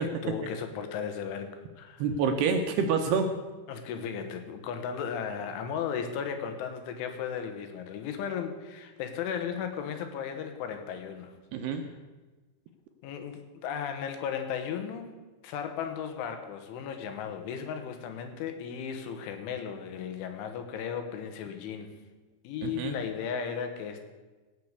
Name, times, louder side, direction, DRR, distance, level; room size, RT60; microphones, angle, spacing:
voice 1, 0.0-2.1 3.7-11.4 11.8-11.9 13.0-15.1 15.4-22.0 22.5-24.1, left 7 dB, 85° left, 7 dB, 3.8 m, -35 dB
voice 2, 2.0-3.3 11.5-11.8 22.6-22.9, right 5 dB, 75° right, 5 dB, 2.6 m, -27 dB
17.0 x 6.7 x 8.1 m, 1.3 s
omnidirectional pair, 5.4 m